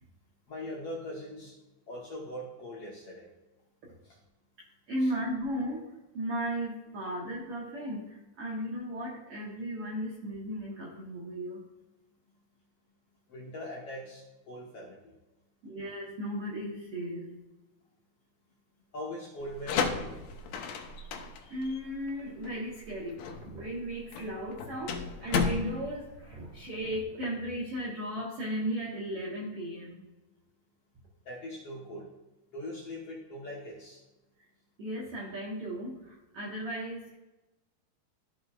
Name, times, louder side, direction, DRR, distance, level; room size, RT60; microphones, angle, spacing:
voice 1, 0.5-1.5 1.9-3.3 4.0-4.2 5.0-5.1 13.3-15.1 18.9-20.1 31.2-32.1 32.5-34.0, equal, 60° left, -4 dB, 1.7 m, -41 dB
voice 2, 4.6-11.6 15.6-17.3 21.5-30.0 34.8-37.1, equal, 70° right, -3 dB, 1.4 m, -36 dB
sound 1, 19.4-27.0, left 5 dB, 75° left, 2.4 m, -34 dB
13.0 x 5.5 x 2.4 m, 1.0 s
omnidirectional pair, 4.3 m